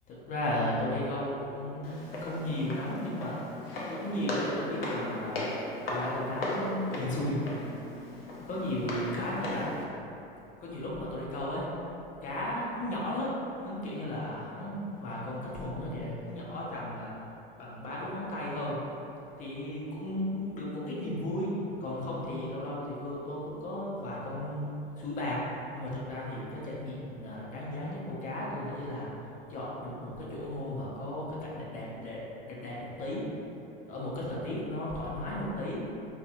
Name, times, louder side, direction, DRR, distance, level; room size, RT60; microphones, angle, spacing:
voice 1, 0.1-3.4 3.9-5.4 5.9-7.4 8.5-9.7 10.6-11.7 12.2-17.1 17.6-18.8 19.4-21.5 21.8-29.1 29.5-32.2 32.5-33.3 33.8-35.8, left 1 dB, 25° left, -5 dB, 0.6 m, -35 dB
Walk footsteps, 1.8-9.8, left 1 dB, 75° left, 0.6 m, -37 dB
2.7 x 2.3 x 2.6 m, 2.8 s
figure-of-eight pair, 85°, 30 cm